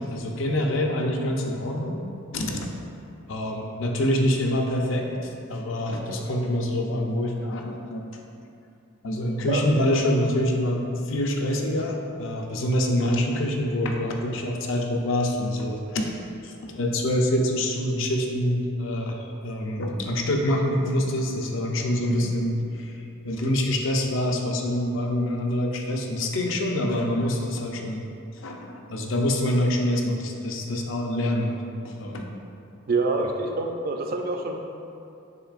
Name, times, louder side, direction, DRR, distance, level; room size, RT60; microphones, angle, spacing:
voice 1, 0.0-2.0 2.3-2.7 3.3-8.0 9.0-28.0 28.3-31.6 31.8-32.3 33.2-33.3, left 1 dB, 65° left, 1 dB, 0.5 m, -26 dB
voice 2, 32.9-34.6, right 3 dB, 50° right, 2 dB, 0.4 m, -26 dB
6.6 x 3.2 x 2.4 m, 2.6 s
head